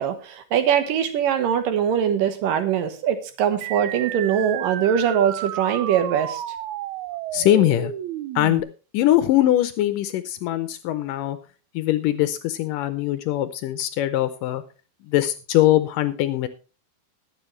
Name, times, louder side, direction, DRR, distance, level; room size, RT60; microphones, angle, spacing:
voice 1, 0.0-6.4, right 8 dB, 70° right, 9 dB, 2.7 m, -22 dB
sound 1, 3.6-8.6, right 12 dB, 85° right, 1.6 m, -32 dB
voice 2, 7.3-7.9 8.4-8.7 8.9-11.4 11.7-14.6 15.1-16.5, left 14 dB, 75° left, 12 dB, 2.1 m, -21 dB
20.5 x 7.5 x 3.2 m, 0.33 s
omnidirectional pair, 4.3 m